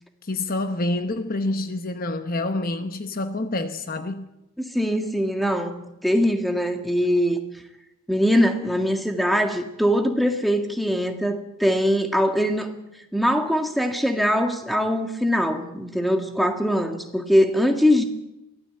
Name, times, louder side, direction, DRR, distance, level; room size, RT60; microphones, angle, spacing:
voice 1, 0.2-4.3, left 2 dB, 40° left, 1.0 m, -27 dB
voice 2, 4.6-7.4 8.1-12.7 13.1-18.0, equal, ahead, 1.8 m, -22 dB
23.5 x 16.0 x 7.8 m
head